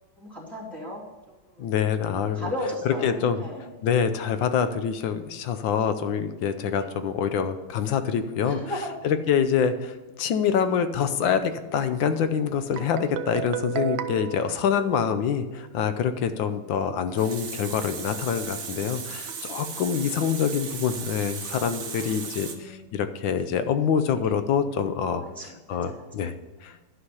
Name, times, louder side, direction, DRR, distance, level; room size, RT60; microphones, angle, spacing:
voice 1, 0.2-1.0 1.5-1.7 2.3-3.7 6.7-6.9 8.4-8.9 10.5-10.7 21.9-22.9 24.1-24.2 25.1-26.0, left 1 dB, ahead, -5 dB, 2.7 m, -36 dB
voice 2, 1.6-2.5 2.8-3.4 3.8-8.6 9.0-25.3 25.7-26.3 26.6-26.7, left 7 dB, 75° left, 10 dB, 1.4 m, -26 dB
Guitar, 12.8-15.6, right 11 dB, 80° right, 1.4 m, -34 dB
Water tap faucet, 16.9-22.6, right 6 dB, 50° right, 1.3 m, -36 dB
11.5 x 5.7 x 5.5 m, 1.2 s
omnidirectional pair, 2.1 m